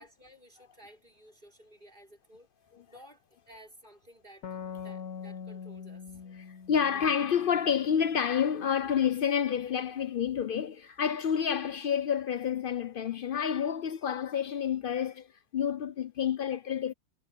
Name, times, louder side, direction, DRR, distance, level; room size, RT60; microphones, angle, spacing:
voice 1, 0.0-2.5 2.9-6.2 6.9-7.0, right 1 dB, 35° right, 6.3 m, -55 dB
sound 1, 4.4-7.9, left 7 dB, 85° left, 1.7 m, -43 dB
voice 2, 6.5-15.3 15.5-16.9, left 8 dB, 70° left, 0.5 m, -29 dB
omnidirectional pair, 1.6 m